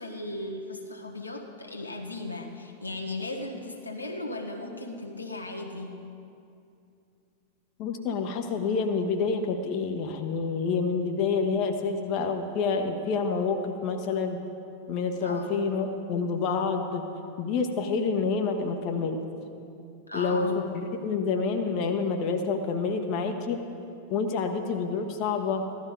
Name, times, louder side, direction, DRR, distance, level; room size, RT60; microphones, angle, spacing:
voice 1, 0.0-6.0 15.2-15.5 20.1-20.6, left 2 dB, 85° left, 1 dB, 1.4 m, -36 dB
voice 2, 7.8-14.4 14.9-17.0 17.4-19.2 20.1-23.6 24.1-25.7, left 5 dB, 40° left, 4 dB, 1.2 m, -28 dB
15.5 x 12.5 x 5.3 m, 2.6 s
figure-of-eight pair, 90°, 0 cm